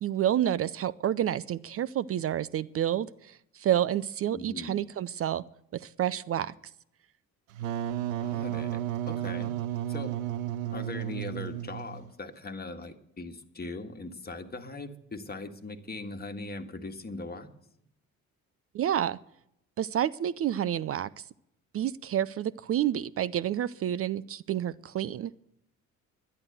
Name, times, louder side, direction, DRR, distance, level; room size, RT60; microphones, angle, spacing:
voice 1, 0.0-5.4 5.7-6.5 18.7-19.2 19.8-21.2 21.7-25.3, right 11 dB, 35° right, 19 dB, 0.4 m, -29 dB
voice 2, 4.3-4.8 8.2-9.5 9.9-10.1 10.7-17.5, left 2 dB, 25° left, 6 dB, 1.7 m, -40 dB
Wind instrument woodwind instrument, 7.5-12.1, right 11 dB, 85° right, 0.7 m, -33 dB
11.0 x 10.5 x 7.9 m, 0.78 s
hypercardioid pair, 50°, 40 cm